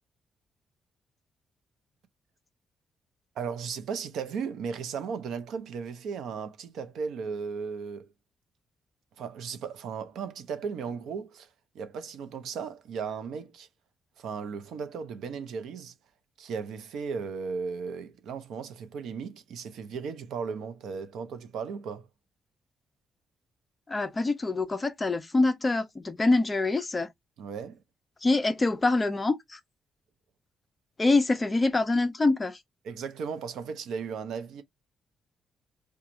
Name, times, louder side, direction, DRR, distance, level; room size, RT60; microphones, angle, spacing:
voice 1, 3.3-8.1 9.2-11.5 11.7-13.7 14.2-15.9 16.4-22.1 27.4-27.8 32.8-34.6, right 6 dB, 80° right, 0.8 m, -36 dB
voice 2, 23.9-27.1 28.2-29.6 31.0-32.6, left 2 dB, 20° left, 0.7 m, -25 dB
4.6 x 2.4 x 3.8 m
cardioid pair, 115°, 0 cm